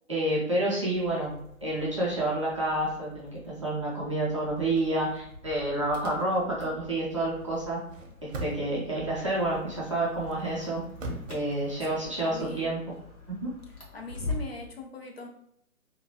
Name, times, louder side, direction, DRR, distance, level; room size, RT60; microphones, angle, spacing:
voice 1, 0.1-7.8 8.2-10.8 11.3-12.8, right 1 dB, 25° right, -7 dB, 0.5 m, -29 dB
sound 1, 0.9-14.6, left 2 dB, 85° left, 1.3 m, -44 dB
sound 2, 4.5-4.9 7.8-8.9 10.3-11.4, right 1 dB, 60° right, 0.8 m, -39 dB
voice 2, 11.9-12.8 13.9-15.3, left 3 dB, 45° left, 1 dB, 0.5 m, -41 dB
2.8 x 2.2 x 2.7 m, 0.72 s
figure-of-eight pair, 140°, 43 cm